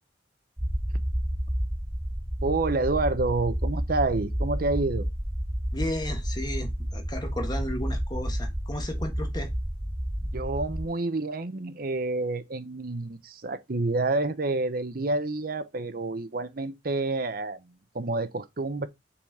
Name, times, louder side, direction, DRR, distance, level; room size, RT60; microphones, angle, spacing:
sound 1, 0.6-10.8, equal, 15° right, 1.5 m, -30 dB
voice 1, 2.4-5.1 10.2-18.9, right 2 dB, 55° right, 0.8 m, -28 dB
voice 2, 5.7-9.5, left 1 dB, 25° left, 1.4 m, -34 dB
7.1 x 4.1 x 4.8 m
head